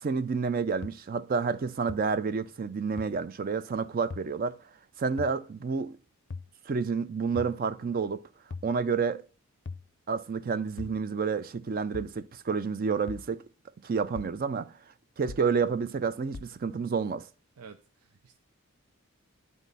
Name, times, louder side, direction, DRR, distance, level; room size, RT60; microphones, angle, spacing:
voice 1, 0.0-4.6 5.0-6.0 6.7-8.2 8.6-9.2 10.1-13.4 13.8-14.7 15.2-17.3, right 5 dB, 40° right, 0.4 m, -29 dB
sound 1, 0.8-0.9 1.9-2.0 3.0-3.1 4.1-4.3 5.2-5.4 6.3-6.5 7.4-7.6 8.5-8.7 9.7-9.9 10.8-11.0 11.9-12.2 13.1-13.3 14.2-14.4 15.3-15.5 16.3-16.6, left 4 dB, 55° left, 0.5 m, -40 dB
voice 2, 17.6-18.4, right 5 dB, 90° right, 0.5 m, -51 dB
10.5 x 4.1 x 4.0 m
head